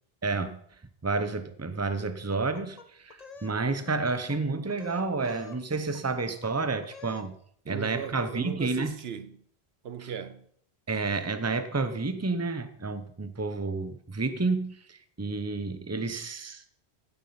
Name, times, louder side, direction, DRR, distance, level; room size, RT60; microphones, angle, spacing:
voice 1, 0.2-0.6 1.0-7.4 7.7-8.9 10.9-16.6, right 3 dB, 15° right, 0.8 m, -30 dB
sound 1, 2.3-3.6 3.9-4.4 4.7-5.6 5.9-6.5 6.8-7.3, left 5 dB, 40° left, 1.1 m, -48 dB
voice 2, 7.7-9.4 9.8-10.4, right 7 dB, 75° right, 1.0 m, -38 dB
16.0 x 7.4 x 5.8 m
omnidirectional pair, 1.1 m